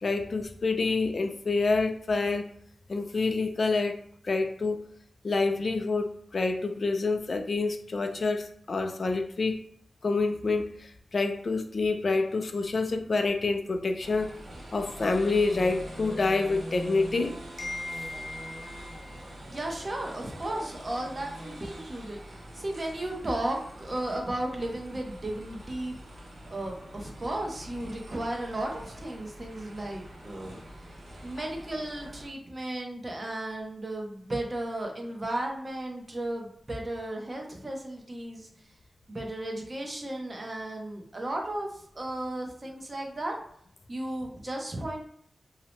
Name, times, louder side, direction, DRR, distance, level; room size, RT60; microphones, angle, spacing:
voice 1, 0.0-2.5 2.9-4.0 4.2-4.8 5.2-9.6 10.0-14.3 14.7-19.1, left 3 dB, 55° left, 6 dB, 0.3 m, -28 dB
sound 1, 14.0-32.3, right 1 dB, 80° right, 0.7 m, -44 dB
voice 2, 19.5-22.2 22.5-26.0 26.5-30.6 31.2-38.5 39.1-43.3 43.9-45.0, right 1 dB, 35° right, 1 dB, 0.6 m, -34 dB
2.7 x 2.0 x 3.0 m, 0.68 s
wide cardioid pair, 80°, 0 cm